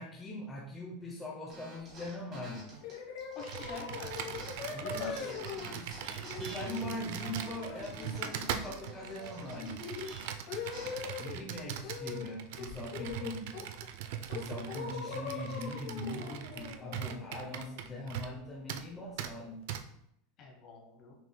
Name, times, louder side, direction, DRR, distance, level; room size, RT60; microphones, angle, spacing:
voice 1, 0.0-2.7 4.7-5.9 6.4-9.8 11.1-13.5 14.3-19.6, left 1 dB, 10° left, -3 dB, 0.6 m, -41 dB
sound 1, 1.5-4.7 5.0-10.9, right 2 dB, 30° right, 1.7 m, -50 dB
sound 2, 2.8-11.4 11.8-12.3 12.6-13.8 14.3-18.0, left 6 dB, 65° left, 0.9 m, -42 dB
voice 2, 3.3-4.1 4.8-5.4 20.4-21.2, left 3 dB, 35° left, 1 dB, 1.0 m, -46 dB
Computer keyboard, 3.4-18.4 18.7-18.9 19.2-19.3 19.7-19.8, right 9 dB, 65° right, 0.4 m, -41 dB
6.1 x 3.6 x 2.2 m, 0.78 s
supercardioid pair, 165°, 0 cm